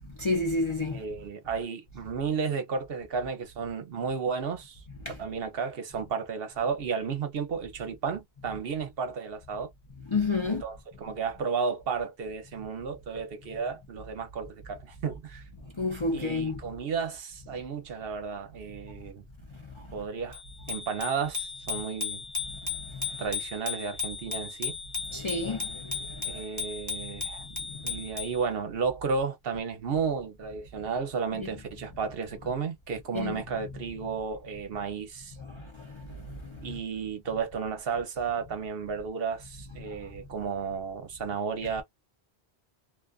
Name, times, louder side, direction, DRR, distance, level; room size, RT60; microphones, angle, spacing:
voice 1, 0.2-1.0 5.1-5.2 10.1-10.6 15.8-16.6 22.9-23.1 25.1-26.4 31.4-31.5 33.1-33.4 35.4-36.6, left 3 dB, 40° left, 0.4 m, -30 dB
voice 2, 0.9-4.8 5.2-9.7 10.4-15.4 16.1-19.3 19.9-20.4 20.7-22.2 23.2-24.7 26.2-27.5 27.8-35.4 36.6-41.8, right 5 dB, 65° right, 0.9 m, -33 dB
Bicycle bell, 20.3-28.4, left 5 dB, 15° left, 1.0 m, -36 dB
2.4 x 2.3 x 2.3 m
omnidirectional pair, 1.1 m